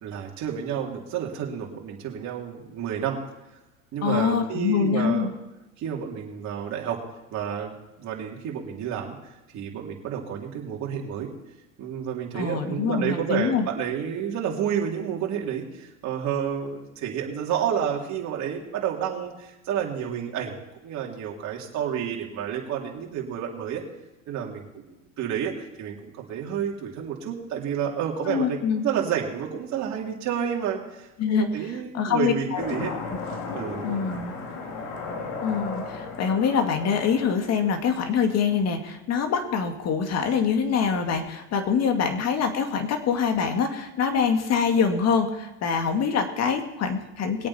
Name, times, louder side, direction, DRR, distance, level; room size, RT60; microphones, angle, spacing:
voice 1, 0.0-3.2 3.9-5.3 5.8-7.0 7.3-9.2 9.5-11.3 11.8-23.8 24.3-32.9 33.5-34.1, right 8 dB, 45° right, -1 dB, 3.2 m, -30 dB
voice 2, 4.0-5.3 12.3-13.7 28.3-28.9 31.2-31.5 31.9-33.0 33.8-34.3 35.4-47.5, left 6 dB, 40° left, 6 dB, 2.2 m, -25 dB
sound 1, 32.5-38.5, left 4 dB, 70° left, 3.1 m, -36 dB
21.5 x 8.6 x 4.4 m, 0.99 s
supercardioid pair, 110°, 40 cm